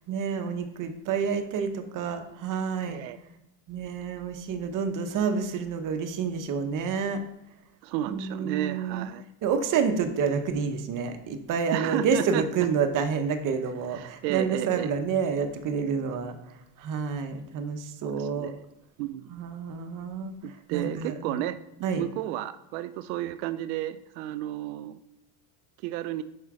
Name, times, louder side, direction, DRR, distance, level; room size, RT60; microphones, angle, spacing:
voice 1, 0.1-3.0 3.7-7.2 8.1-9.1 9.4-16.4 16.8-18.5 19.3-20.4 20.7-21.4 21.8-22.0, right 6 dB, 40° right, 7 dB, 0.9 m, -29 dB
voice 2, 7.8-9.2 11.7-12.4 13.9-14.9 18.0-18.6 19.0-19.3 20.4-21.6 22.0-25.0 25.8-26.2, right 14 dB, 90° right, 13 dB, 0.5 m, -32 dB
5.6 x 5.4 x 4.8 m, 0.85 s
supercardioid pair, 120°, 49 cm